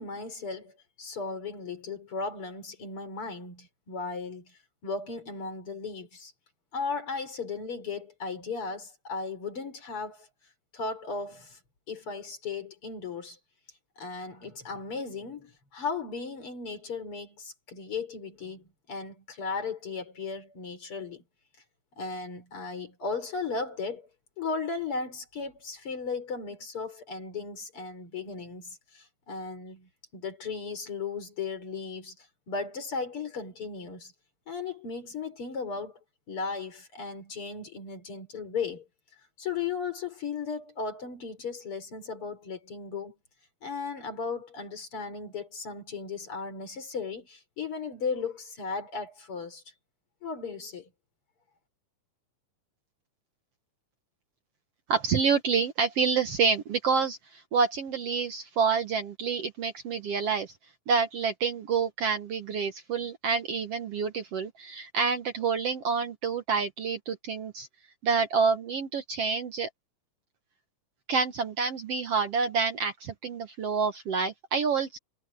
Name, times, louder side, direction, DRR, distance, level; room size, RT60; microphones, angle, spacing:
voice 1, 0.0-6.3 6.7-10.3 10.7-11.6 11.9-13.4 14.0-21.2 22.0-24.1 24.4-32.2 32.5-34.1 34.5-36.0 36.3-38.8 39.4-43.1 43.6-49.6 50.2-50.9, left 4 dB, 45° left, 4.6 m, -36 dB
voice 2, 54.9-60.5 60.9-67.7 68.0-69.7 71.1-75.0, right 5 dB, 60° right, 1.9 m, -28 dB
omnidirectional pair, 3.6 m